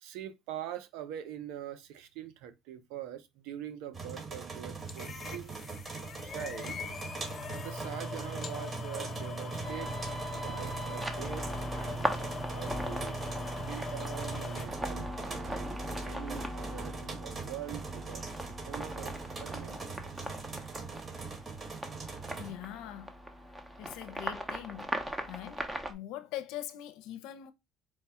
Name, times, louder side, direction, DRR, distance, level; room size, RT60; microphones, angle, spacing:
voice 1, 0.0-5.6 6.2-6.8 7.6-9.9 10.3-11.5 11.7-13.2 13.6-15.7 16.0-18.2 18.6-20.3, right 11 dB, 80° right, 0.7 m, -44 dB
sound 1, 3.9-22.5, right 4 dB, 35° right, 1.9 m, -42 dB
sound 2, 4.9-14.7, left 2 dB, 35° left, 0.8 m, -40 dB
sound 3, 9.6-25.9, equal, 10° right, 0.9 m, -39 dB
voice 2, 22.4-23.1 23.8-24.9 25.3-27.5, left 12 dB, 80° left, 0.6 m, -42 dB
4.6 x 2.4 x 4.1 m
supercardioid pair, 100°, 0 cm